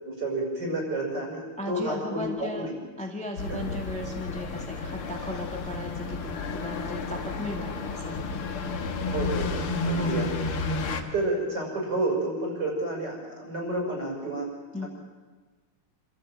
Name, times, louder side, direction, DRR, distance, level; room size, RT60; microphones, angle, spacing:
voice 1, 0.0-2.7 3.5-3.6 9.1-14.5 14.8-14.9, right 2 dB, 50° right, -1 dB, 7.1 m, -30 dB
voice 2, 1.6-2.7 3.0-8.5 10.0-10.3 10.9-11.1 14.7-14.9, left 1 dB, 5° left, 1 dB, 1.8 m, -36 dB
sound 1, 3.4-11.0, left 3 dB, 80° left, 2.5 m, -31 dB
27.0 x 13.5 x 9.0 m, 1.3 s
omnidirectional pair, 2.3 m